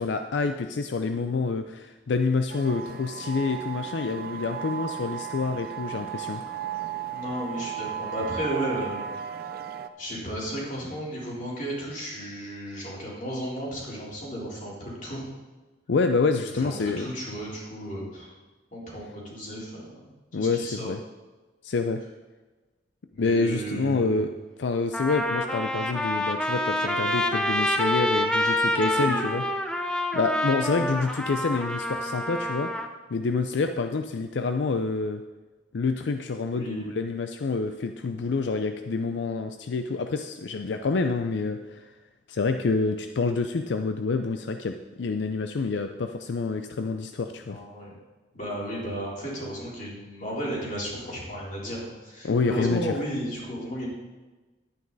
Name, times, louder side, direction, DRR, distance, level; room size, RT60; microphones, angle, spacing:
voice 1, 0.0-6.4 15.9-17.1 20.3-21.0 21.6-22.0 23.2-24.3 24.6-29.4 30.1-32.7 33.1-35.2 35.7-41.9 42.3-47.6 52.2-52.9, left 4 dB, 85° left, 7 dB, 0.5 m, -27 dB
sound 1, 2.5-9.9, right 8 dB, 55° right, 0.5 m, -35 dB
voice 2, 7.1-9.1 10.0-15.3 16.6-18.3 18.7-20.9 23.1-24.3 28.9-29.2 30.7-31.0 36.4-36.9 47.5-47.9 48.3-53.9, equal, 45° left, -5 dB, 3.6 m, -34 dB
Trumpet, 24.2-24.3 24.9-32.9, left 1 dB, 5° left, 0.6 m, -27 dB
11.0 x 9.4 x 4.0 m, 1.2 s
head